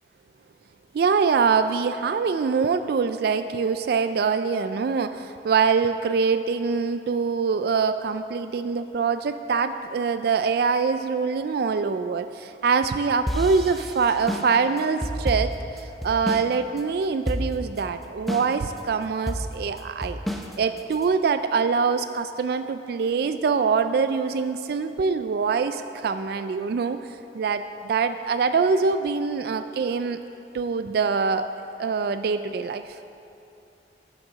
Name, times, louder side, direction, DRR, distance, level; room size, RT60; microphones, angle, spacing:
voice 1, 0.9-20.2 20.6-27.0 27.3-30.2 30.5-31.5 31.7-32.9, right 5 dB, 55° right, 10 dB, 0.3 m, -24 dB
sound 1, 13.3-16.5 16.8-16.9 17.3-17.8 18.3-18.8 19.3-21.0, equal, ahead, 0.6 m, -29 dB
10.5 x 7.5 x 6.3 m, 2.7 s
head